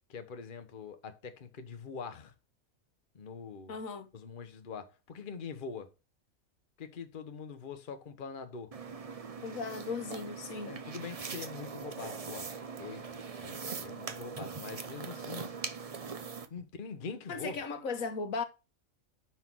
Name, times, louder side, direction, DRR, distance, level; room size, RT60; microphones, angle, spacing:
voice 1, 0.1-2.3 3.1-3.8 4.1-5.9 6.8-8.7 10.6-12.5 12.8-15.5 16.5-17.6, left 5 dB, 40° left, 1.0 m, -44 dB
voice 2, 3.7-4.1 9.4-10.7 17.3-18.4, left 4 dB, 75° left, 1.4 m, -37 dB
sound 1, 8.7-16.5, right 5 dB, 35° right, 0.6 m, -41 dB
5.6 x 5.6 x 6.1 m
omnidirectional pair, 1.4 m